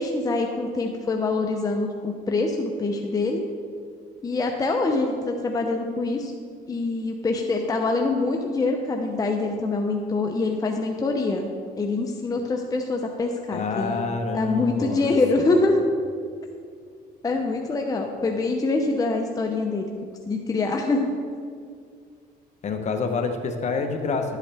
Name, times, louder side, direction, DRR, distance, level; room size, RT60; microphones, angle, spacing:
voice 1, 0.0-3.4 4.2-6.3 6.7-11.5 11.8-14.0 14.3-15.8 17.2-19.9 20.3-21.1, left 3 dB, 20° left, 2 dB, 0.7 m, -25 dB
voice 2, 13.5-15.6 22.6-24.4, left 4 dB, 40° left, 5 dB, 1.0 m, -28 dB
11.5 x 8.2 x 3.4 m, 2.2 s
cardioid pair, 110°, 17 cm